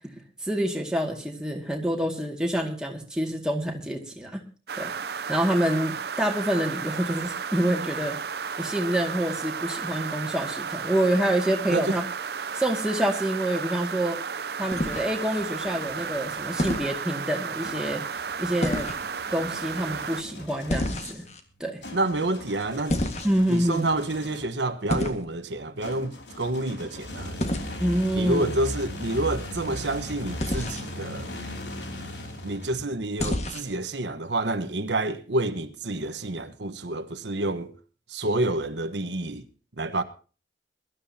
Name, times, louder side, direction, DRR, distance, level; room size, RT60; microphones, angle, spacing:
voice 1, 0.4-4.4 4.8-8.2 8.6-12.0 12.5-14.2 14.6-18.0 18.4-18.9 19.3-21.2 21.6-21.8 23.2-23.8 27.8-28.5, right 1 dB, 5° right, 2.1 m, -27 dB
sound 1, 4.7-20.2, right 6 dB, 65° right, 0.6 m, -33 dB
sound 2, 14.7-15.4 16.6-16.9 18.6-19.0 20.7-21.4 22.9-23.6 24.9-25.3 27.4-27.7 30.4-30.9 33.2-33.8, left 1 dB, 40° left, 1.6 m, -28 dB
sound 3, 15.2-16.7 17.6-24.6 25.8-33.1, left 1 dB, 85° left, 2.9 m, -39 dB
voice 2, 21.9-23.0 23.5-27.4 28.1-31.3 32.4-37.7 38.1-39.4 39.8-40.0, right 2 dB, 90° right, 1.2 m, -28 dB
22.5 x 12.5 x 2.8 m
head